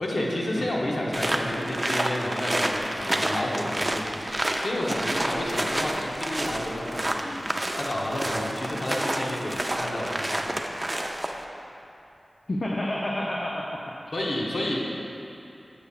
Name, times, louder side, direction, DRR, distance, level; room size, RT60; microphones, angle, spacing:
voice 1, 0.0-10.4 14.1-14.8, left 1 dB, 75° left, -3 dB, 0.9 m, -31 dB
sound 1, 1.1-11.4, right 1 dB, 25° right, 0.4 m, -29 dB
voice 2, 12.5-13.8, left 1 dB, 50° left, -3 dB, 0.5 m, -29 dB
6.9 x 6.7 x 2.4 m, 2.8 s
wide cardioid pair, 60°, 0 cm